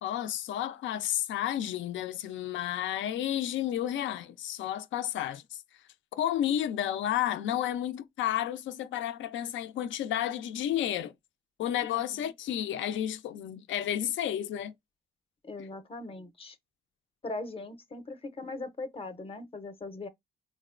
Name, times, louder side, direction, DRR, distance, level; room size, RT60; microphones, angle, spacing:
voice 1, 0.0-5.6 6.1-11.1 11.6-14.7 15.6-15.7, left 11 dB, 75° left, 0.5 m, -31 dB
voice 2, 11.8-12.3 15.4-16.6 17.2-20.1, left 2 dB, 30° left, 0.6 m, -40 dB
3.9 x 2.1 x 2.4 m
cardioid pair, 90°, 20 cm